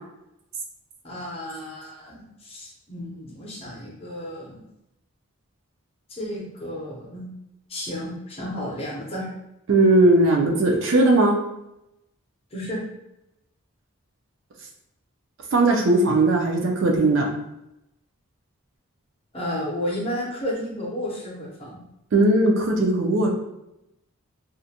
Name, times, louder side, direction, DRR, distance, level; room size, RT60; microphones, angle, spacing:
voice 1, 1.0-4.6 6.1-7.3 7.7-9.3 12.5-12.8 19.3-21.8, equal, 25° left, -4 dB, 0.6 m, -32 dB
voice 2, 9.7-11.3 15.5-17.3 22.1-23.3, right 2 dB, 55° right, 0 dB, 0.4 m, -18 dB
2.4 x 2.1 x 2.7 m, 0.88 s
head